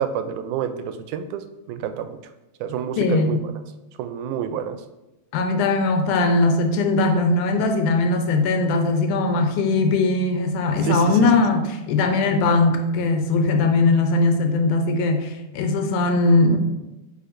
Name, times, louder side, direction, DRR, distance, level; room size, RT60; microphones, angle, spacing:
voice 1, 0.0-1.4 1.7-2.2 2.6-3.4 4.0-4.8 10.8-11.0, right 8 dB, 90° right, 2.0 m, -28 dB
voice 2, 3.0-3.4 5.3-16.6, left 3 dB, 85° left, 2.2 m, -20 dB
8.4 x 4.9 x 2.5 m
omnidirectional pair, 3.4 m